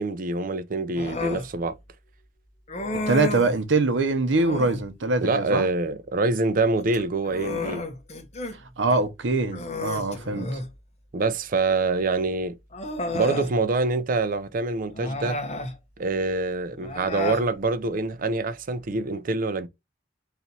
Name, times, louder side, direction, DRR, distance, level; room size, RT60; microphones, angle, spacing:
voice 1, 0.0-1.8 5.2-7.8 11.1-12.6 13.1-15.4 16.0-19.7, right 3 dB, 45° right, 0.5 m, -25 dB
Human voice, 1.0-1.5 2.7-3.6 4.3-4.9 6.8-8.6 8.9-9.0 9.5-10.7 11.9-12.0 12.7-13.5 14.9-15.8 16.8-17.5, left 2 dB, 35° left, 0.9 m, -32 dB
voice 2, 3.1-5.7 8.8-10.6, right 3 dB, 70° right, 0.8 m, -23 dB
4.0 x 3.0 x 4.0 m
head